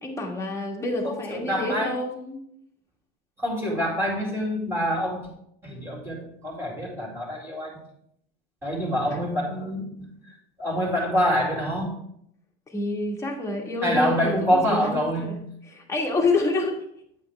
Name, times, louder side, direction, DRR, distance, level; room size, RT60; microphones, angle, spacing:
voice 1, 0.0-2.4 9.1-9.2 12.7-15.3 15.7-16.8, left 2 dB, 10° left, 0 dB, 1.5 m, -28 dB
voice 2, 1.0-1.9 3.4-5.3 5.6-7.8 8.6-10.1 10.6-11.9 13.8-15.4, equal, 10° right, -1 dB, 2.3 m, -26 dB
9.4 x 8.3 x 3.4 m, 0.69 s
supercardioid pair, 150°, 31 cm